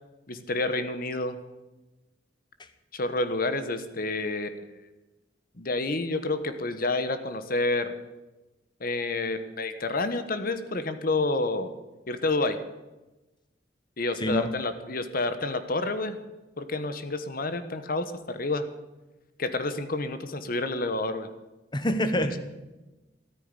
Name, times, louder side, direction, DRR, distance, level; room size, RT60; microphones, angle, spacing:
voice 1, 0.3-1.4 2.9-4.7 5.6-7.9 8.8-11.7 12.1-12.6 14.0-16.2 16.6-18.6 19.4-21.3, left 2 dB, 50° left, 10 dB, 1.3 m, -29 dB
voice 2, 14.2-14.5 21.7-22.4, equal, 25° left, 10 dB, 1.3 m, -26 dB
14.0 x 9.4 x 9.8 m, 1.1 s
head